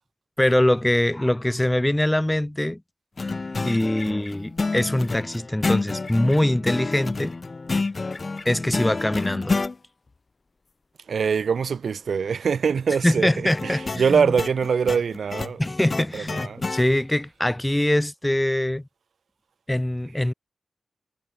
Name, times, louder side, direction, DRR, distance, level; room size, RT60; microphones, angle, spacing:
voice 1, 0.4-2.8 3.6-7.4 8.5-9.6 13.0-14.3 15.6-18.9 19.7-20.3, left 1 dB, 10° left, 0.4 m, -23 dB
sound 1, 3.2-9.7 13.5-16.9, left 3 dB, 40° left, 2.1 m, -29 dB
voice 2, 11.1-15.6 16.1-16.6, right 6 dB, 80° right, 0.9 m, -23 dB
wide cardioid pair, 115°, 0 cm